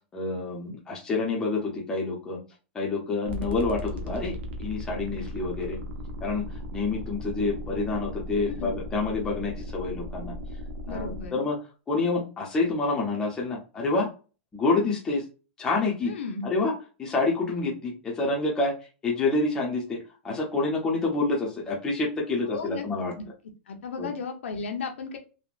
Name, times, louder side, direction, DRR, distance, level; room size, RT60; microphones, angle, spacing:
voice 1, 0.1-2.4 2.7-5.8 6.2-6.5 6.7-10.4 10.9-11.6 11.9-14.1 14.5-15.2 15.6-16.1 16.4-16.7 17.0-18.7 19.0-20.0 20.2-23.1 24.0-24.1, left 3 dB, 10° left, -2 dB, 0.6 m, -27 dB
sound 1, 3.3-11.3, left 1 dB, 70° right, 0.7 m, -36 dB
voice 2, 10.9-11.4 16.1-16.5 22.5-22.9 23.2-23.3 23.7-25.2, left 5 dB, 85° left, 4 dB, 0.8 m, -34 dB
3.4 x 2.1 x 2.4 m, 0.33 s
supercardioid pair, 170°, 6 cm